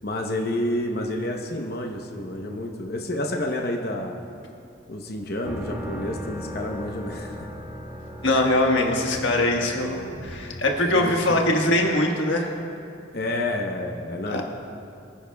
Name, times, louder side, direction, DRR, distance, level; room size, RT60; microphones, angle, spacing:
voice 1, 0.0-4.2 4.9-7.4 10.9-11.4 13.1-14.4, left 1 dB, 50° left, 2 dB, 0.8 m, -29 dB
sound 1, 5.5-11.3, equal, 10° right, 1.0 m, -37 dB
voice 2, 8.2-12.5 14.3-14.4, left 1 dB, 85° left, 0 dB, 1.5 m, -22 dB
24.5 x 10.0 x 2.3 m, 2.6 s
head